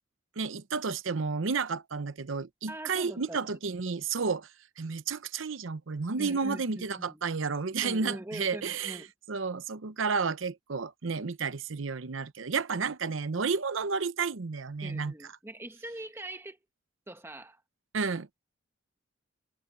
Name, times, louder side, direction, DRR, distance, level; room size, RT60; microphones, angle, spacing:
voice 1, 0.4-4.5 4.8-9.0 9.3-15.1 17.9-18.3, right 5 dB, 85° right, 0.8 m, -31 dB
voice 2, 2.7-3.4 6.2-7.2 7.8-9.1 14.8-16.6 17.1-17.6, right 1 dB, 15° right, 1.5 m, -42 dB
head